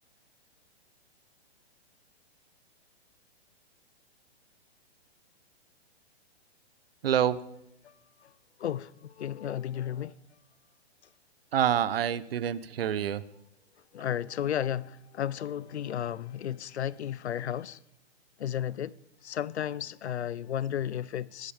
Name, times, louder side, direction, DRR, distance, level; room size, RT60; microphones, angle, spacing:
voice 1, 7.0-7.4 11.5-13.2, right 9 dB, 60° right, 1.1 m, -27 dB
voice 2, 8.6-10.1 13.9-17.8 18.4-18.9 19.2-21.5, left 10 dB, 80° left, 0.8 m, -33 dB
21.5 x 13.0 x 5.2 m
hypercardioid pair, 165°, 33 cm